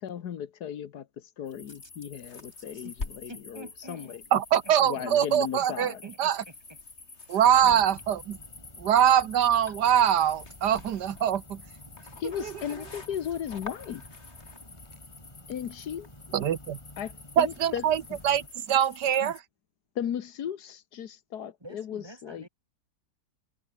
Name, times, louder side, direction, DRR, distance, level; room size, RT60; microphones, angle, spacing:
voice 1, 0.0-4.2 4.8-6.0 12.2-14.1 15.5-16.1 17.0-17.1 17.4-17.8 19.9-22.5, left 9 dB, 75° left, 1.6 m, -36 dB
sound 1, 1.5-19.4, left 3 dB, 40° left, 2.9 m, -47 dB
voice 2, 2.7-4.2 4.6-5.1 5.6-6.8 7.2-7.8 9.7-9.8 19.2-19.3 21.6-22.5, right 1 dB, 15° right, 4.2 m, -48 dB
voice 3, 4.3-5.9 6.2-6.4 7.3-8.4 8.8-11.6 12.4-12.5 16.3-16.8 17.4-19.3, right 9 dB, 85° right, 1.7 m, -23 dB
sound 2, 7.4-18.5, left 1 dB, 15° left, 5.8 m, -51 dB
omnidirectional pair, 1.7 m